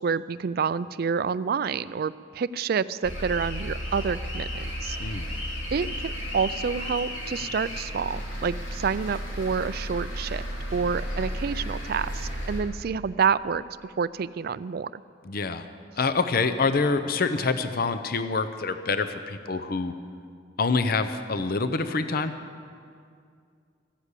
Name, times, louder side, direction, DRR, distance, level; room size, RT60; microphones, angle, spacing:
voice 1, 0.0-5.0 5.7-10.4 10.7-15.0, right 6 dB, 50° right, 16 dB, 0.4 m, -28 dB
sound 1, 3.0-12.6, equal, 80° left, 3.6 m, -33 dB
voice 2, 15.3-15.7 15.9-19.9 20.6-22.3, left 4 dB, 50° left, 10 dB, 0.6 m, -26 dB
14.5 x 10.0 x 8.3 m, 2.2 s
head